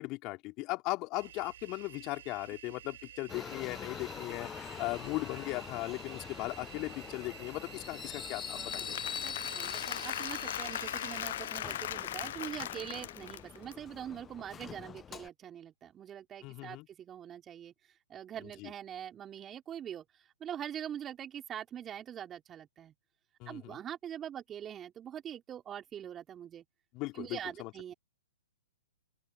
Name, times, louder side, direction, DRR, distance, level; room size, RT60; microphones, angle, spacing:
voice 1, 0.0-9.0 16.4-16.9 18.6-18.7 23.4-23.8 26.9-27.7, left 22 dB, 35° left, 4.0 m, -38 dB
sound 1, 1.1-11.2, right 10 dB, 60° right, 6.7 m, -51 dB
Subway metro underground, 3.3-15.3, left 8 dB, 15° left, 0.8 m, -44 dB
Applause / Crowd, 8.4-13.7, left 11 dB, 55° left, 0.8 m, -39 dB
voice 2, 9.2-17.7 18.1-22.9 23.5-26.6 27.1-27.9, right 9 dB, 20° right, 3.9 m, -43 dB
open air
figure-of-eight pair, 120°, 0 cm